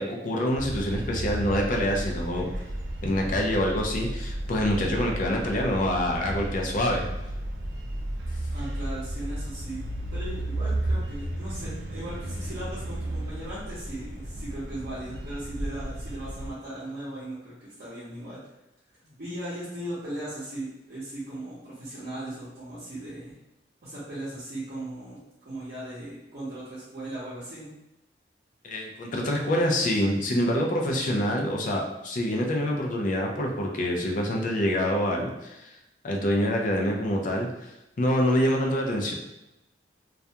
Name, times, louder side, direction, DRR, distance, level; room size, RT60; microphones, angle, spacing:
voice 1, 0.0-2.5 3.0-7.1 28.6-35.7 36.0-37.7 38.0-39.1, equal, 50° left, 1 dB, 0.4 m, -26 dB
sound 1, 0.5-16.5, right 1 dB, 90° right, 0.4 m, -33 dB
voice 2, 8.5-18.4 19.2-23.3 23.8-25.2 25.4-27.7, right 1 dB, 55° right, -11 dB, 0.7 m, -38 dB
2.3 x 2.2 x 2.7 m, 0.92 s
head